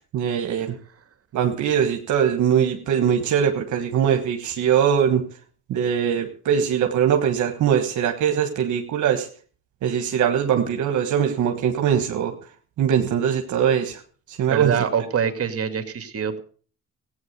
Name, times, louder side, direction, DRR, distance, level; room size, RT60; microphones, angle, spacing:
voice 1, 0.1-0.8 1.3-5.3 5.7-9.3 9.8-12.3 12.8-14.0 14.3-14.7, right 8 dB, 75° right, 5 dB, 1.4 m, -21 dB
voice 2, 14.5-16.4, right 7 dB, 50° right, 8 dB, 2.3 m, -25 dB
16.0 x 8.8 x 6.7 m, 0.43 s
cardioid pair, 90°, 30 cm